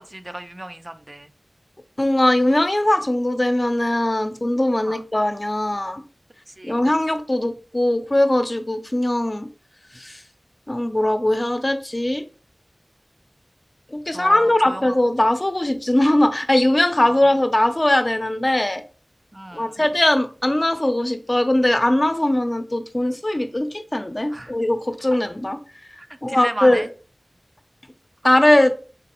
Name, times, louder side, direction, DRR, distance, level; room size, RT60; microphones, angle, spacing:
voice 1, 0.0-1.3 4.8-5.0 6.5-6.8 14.1-15.0 17.0-17.3 19.3-19.8 24.3-24.5 26.3-26.9, right 1 dB, 40° right, 0.4 m, -34 dB
voice 2, 2.0-6.0 6.6-9.5 9.9-10.2 10.7-12.2 13.9-18.8 19.5-25.6 26.2-26.8 28.2-28.7, left 1 dB, 35° left, 0.5 m, -20 dB
3.7 x 3.1 x 2.9 m
wide cardioid pair, 50°, 0 cm